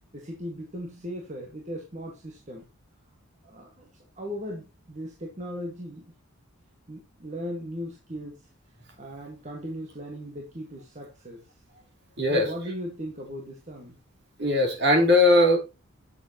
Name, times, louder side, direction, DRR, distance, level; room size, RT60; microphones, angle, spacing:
voice 1, 0.1-2.6 3.4-3.9 4.1-6.1 6.9-8.4 9.0-11.4 12.3-14.0, equal, 35° right, 0 dB, 1.7 m, -37 dB
voice 2, 14.4-15.6, left 1 dB, 50° right, 2 dB, 3.0 m, -19 dB
8.4 x 6.9 x 2.9 m, 0.29 s
head